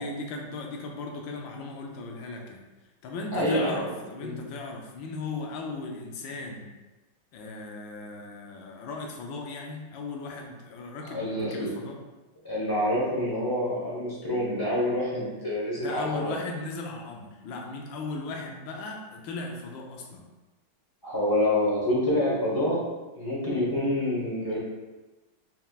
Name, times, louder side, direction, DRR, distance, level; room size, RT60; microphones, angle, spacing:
voice 1, 0.0-2.6 3.0-6.7 7.3-12.0 15.8-20.3, left 3 dB, 70° left, 1 dB, 1.3 m, -37 dB
voice 2, 3.3-3.9 4.2-4.3 11.1-11.7 12.4-16.3 21.0-22.8 23.1-24.6, left 1 dB, 20° left, -7 dB, 0.7 m, -27 dB
4.3 x 3.8 x 2.3 m, 1.1 s
omnidirectional pair, 2.3 m